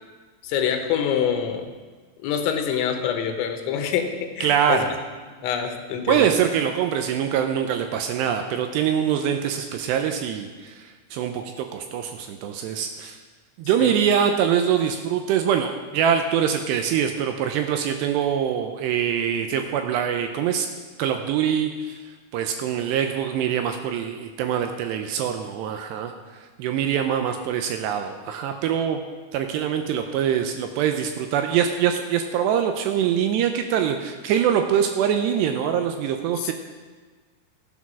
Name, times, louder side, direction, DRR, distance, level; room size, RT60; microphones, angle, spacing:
voice 1, 0.4-1.7 2.2-4.9 5.4-6.3 13.8-13.9 36.4-36.5, left 8 dB, 80° left, 5 dB, 3.3 m, -25 dB
voice 2, 4.4-4.9 6.1-13.2 13.6-20.7 21.0-22.0 22.3-26.1 26.6-29.0 29.3-36.5, right 8 dB, 80° right, 6 dB, 2.6 m, -24 dB
13.5 x 8.3 x 6.1 m, 1.4 s
omnidirectional pair, 5.4 m